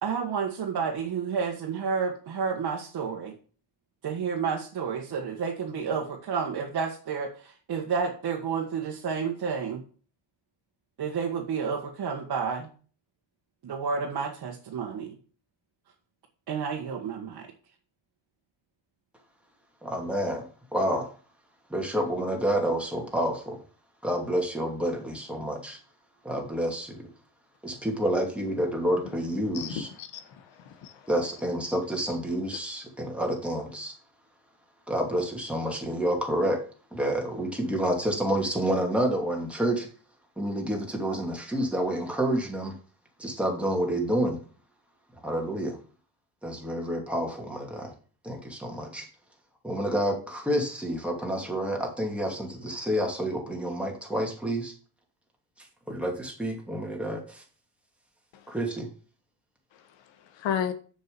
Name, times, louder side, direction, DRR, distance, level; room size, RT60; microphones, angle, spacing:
voice 1, 0.0-3.3 4.0-9.8 11.0-12.7 13.6-15.1 16.5-17.5, right 6 dB, 50° right, 1.8 m, -30 dB
voice 2, 19.8-20.5 20.7-21.1 21.7-23.6 24.0-25.8 26.2-27.1 27.6-29.9 31.1-33.9 34.9-36.6 36.9-39.9 40.4-42.7 43.2-44.4 45.2-45.8 46.4-47.9 48.2-49.1 49.6-54.7 55.9-57.4 58.5-58.9, right 1 dB, 5° right, 2.6 m, -29 dB
voice 3, 29.5-31.1 58.3-58.5 59.7-60.7, left 8 dB, 75° left, 1.5 m, -34 dB
7.1 x 6.1 x 7.0 m
cardioid pair, 115°, 45 cm